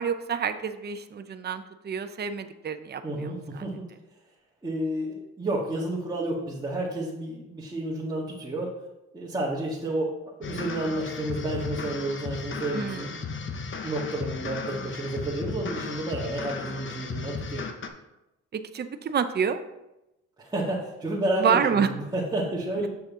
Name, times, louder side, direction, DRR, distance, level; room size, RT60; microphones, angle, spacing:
voice 1, 0.0-3.6 12.7-13.3 18.5-19.6 21.4-21.9, right 7 dB, 35° right, 9 dB, 0.6 m, -28 dB
voice 2, 3.0-3.9 4.6-8.7 9.1-10.1 10.4-13.1 13.8-17.7 20.4-22.9, right 1 dB, 15° right, -8 dB, 1.7 m, -30 dB
sound 1, 10.4-17.9, left 5 dB, 40° left, 0.9 m, -35 dB
7.1 x 6.3 x 3.7 m, 0.93 s
cardioid pair, 90°, 30 cm